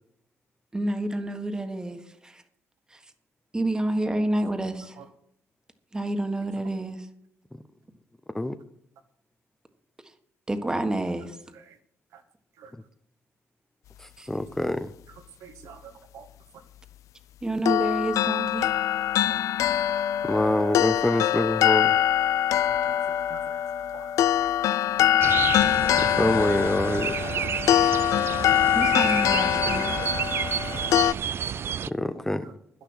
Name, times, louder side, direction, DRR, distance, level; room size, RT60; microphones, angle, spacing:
voice 1, 0.7-2.4 2.9-3.0 3.5-4.9 5.9-7.0 10.5-11.3 14.2-14.3 17.4-18.7 28.7-29.9, right 1 dB, 15° right, 1.5 m, -28 dB
voice 2, 11.2-11.8 12.1-12.2 12.5-12.7 15.1-16.3 16.5-16.6 19.2-19.4 22.7-23.6 23.9-24.5 24.9-25.0 27.6-27.9 29.3-30.1 30.7-31.0 32.4-32.5, right 7 dB, 80° right, 1.7 m, -49 dB
voice 3, 14.0-14.9 20.3-21.9 26.0-27.1 31.9-32.5, left 1 dB, 10° left, 0.7 m, -25 dB
sound 1, 17.7-31.1, left 11 dB, 75° left, 0.4 m, -23 dB
sound 2, 25.2-31.9, right 8 dB, 45° right, 0.4 m, -30 dB
11.5 x 10.5 x 6.3 m
cardioid pair, 115°, 6 cm